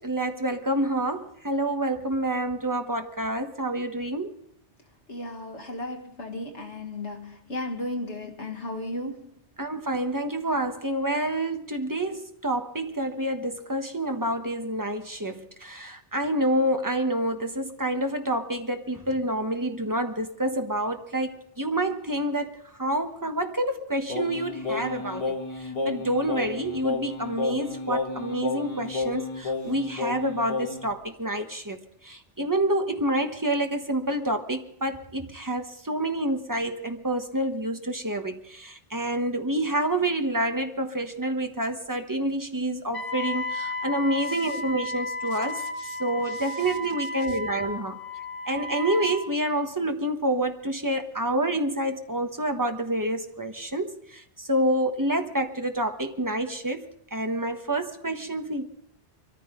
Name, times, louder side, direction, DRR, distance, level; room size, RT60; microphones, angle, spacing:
voice 1, 0.0-4.4 9.6-22.5 22.8-45.6 46.0-48.0 48.5-56.8 57.1-58.6, right 1 dB, 15° right, 1.2 m, -28 dB
voice 2, 5.1-9.3 45.6-46.0 46.3-46.4 47.2-47.3, left 1 dB, 85° left, 2.0 m, -35 dB
Singing, 24.1-30.9, left 3 dB, 30° left, 1.5 m, -31 dB
Wind instrument woodwind instrument, 42.9-49.2, left 1 dB, 35° right, 4.8 m, -33 dB
23.5 x 14.0 x 3.9 m
omnidirectional pair, 1.2 m